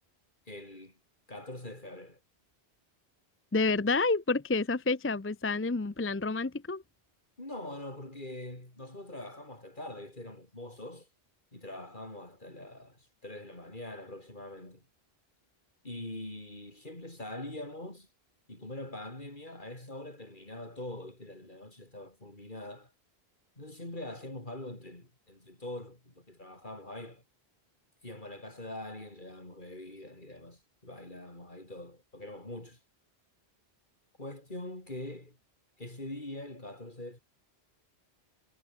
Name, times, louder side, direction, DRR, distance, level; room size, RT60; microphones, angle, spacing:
voice 1, 0.5-1.0 1.3-2.2 7.4-11.1 11.5-14.8 15.8-18.1 18.5-22.9 23.6-27.2 28.0-32.8 34.2-35.4 35.8-37.2, left 1 dB, 50° left, 5.5 m, -43 dB
voice 2, 3.5-6.8, left 3 dB, 15° left, 0.4 m, -29 dB
omnidirectional pair, 1.1 m